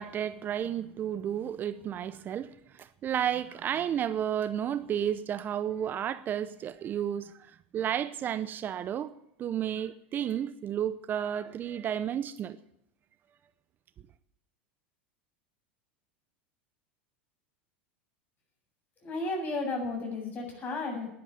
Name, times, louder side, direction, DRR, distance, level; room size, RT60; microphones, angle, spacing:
voice 1, 0.0-9.1 9.4-12.6, right 9 dB, 35° right, 0.7 m, -32 dB
voice 2, 19.0-21.1, left 2 dB, 30° left, 7.5 m, -33 dB
11.5 x 11.5 x 8.9 m
supercardioid pair, 115°, 6 cm